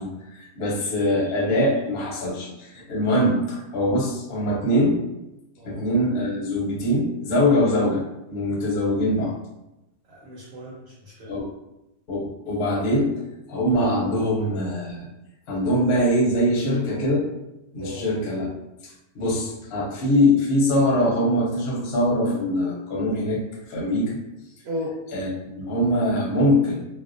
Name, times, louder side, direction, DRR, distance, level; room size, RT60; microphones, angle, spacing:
voice 1, 0.0-5.0 5.6-8.0 8.3-9.3 11.3-11.4 12.1-13.1 13.5-15.1 15.5-17.3 17.7-18.5 18.8-23.4 23.7-24.2 25.1-26.8, left 1 dB, 60° left, -2 dB, 0.7 m, -23 dB
voice 2, 10.1-11.3 17.8-18.0 24.6-24.9, left 1 dB, 85° right, -6 dB, 1.1 m, -35 dB
2.4 x 2.1 x 2.5 m, 0.94 s
omnidirectional pair, 1.5 m